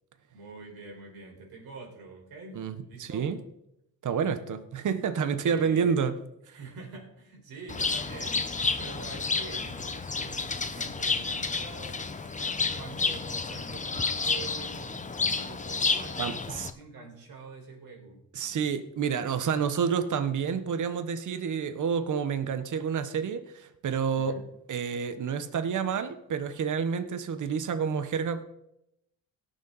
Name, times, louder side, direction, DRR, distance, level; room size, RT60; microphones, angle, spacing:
voice 1, 0.3-3.3 5.4-6.0 6.5-12.0 12.7-18.7 24.1-24.5, right 4 dB, 70° right, 0 dB, 4.7 m, -46 dB
voice 2, 2.5-3.4 4.0-6.2 6.5-6.6 16.2-16.7 18.3-24.4 24.7-28.4, right 6 dB, 55° right, 10 dB, 1.2 m, -29 dB
Bird, 7.7-16.7, left 4 dB, 20° left, 0.9 m, -30 dB
17.5 x 7.1 x 4.1 m, 0.81 s
cardioid pair, 100°, 37 cm